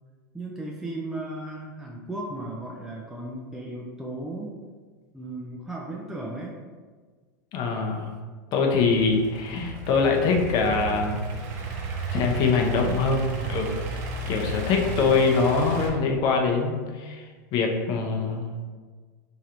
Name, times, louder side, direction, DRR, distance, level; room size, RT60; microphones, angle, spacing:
voice 1, 0.3-4.6 5.1-6.6, right 2 dB, 5° right, -3 dB, 0.4 m, -35 dB
voice 2, 7.5-8.1 8.5-11.2 12.1-13.8 14.3-17.2 17.5-18.5, left 4 dB, 45° left, 2 dB, 0.7 m, -23 dB
Idling / Accelerating revving vroom, 8.8-15.9, right 3 dB, 60° right, 0.7 m, -33 dB
3.1 x 2.9 x 3.7 m, 1.5 s
hypercardioid pair, 115°, 10 cm